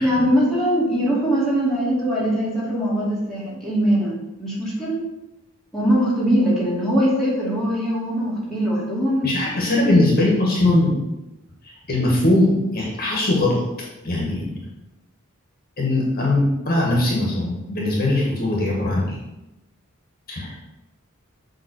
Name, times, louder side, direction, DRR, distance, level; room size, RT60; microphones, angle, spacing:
voice 1, 0.0-5.0 5.7-9.3, equal, ahead, -8 dB, 2.5 m, -21 dB
voice 2, 9.2-10.9 11.6-13.6 14.0-14.7 15.8-19.2 20.3-20.5, left 2 dB, 45° left, -3 dB, 1.9 m, -20 dB
7.4 x 3.7 x 6.6 m, 0.95 s
head